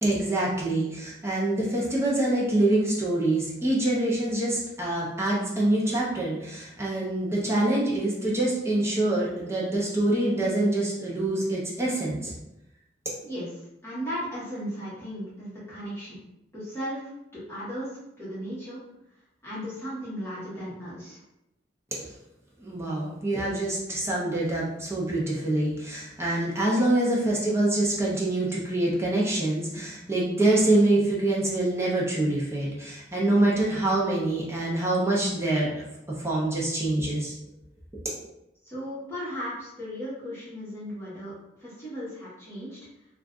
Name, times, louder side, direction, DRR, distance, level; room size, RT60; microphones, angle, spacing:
voice 1, 0.0-12.3 22.6-35.8 36.2-37.3, right 1 dB, 15° right, -5 dB, 0.6 m, -25 dB
voice 2, 13.2-16.2 16.5-17.0 17.3-18.8 19.4-21.2 38.6-41.3 41.6-42.8, equal, 15° left, -11 dB, 1.1 m, -36 dB
2.5 x 2.3 x 3.5 m, 0.87 s
head